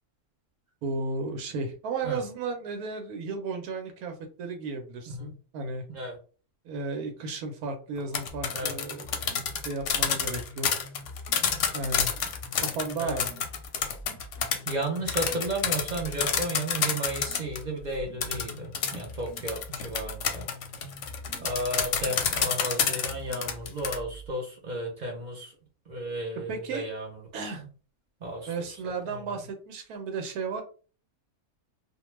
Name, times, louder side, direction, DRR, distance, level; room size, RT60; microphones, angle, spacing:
voice 1, 0.8-5.8 6.6-9.4 9.6-10.7 11.7-12.1 12.6-13.3 26.5-26.9 27.3-27.6 28.5-30.6, right 3 dB, 85° right, 5 dB, 1.1 m, -34 dB
sound 1, 8.0-17.6 18.2-24.0, left 7 dB, 70° left, 0.8 m, -28 dB
sound 2, 8.3-24.3, left 1 dB, 25° left, 0.4 m, -45 dB
voice 2, 14.7-20.5 21.4-25.5 25.9-27.2 27.6-27.7 28.2-28.5 29.1-29.2, right 1 dB, 65° right, -1 dB, 0.4 m, -33 dB
2.4 x 2.2 x 3.0 m, 0.38 s
omnidirectional pair, 1.5 m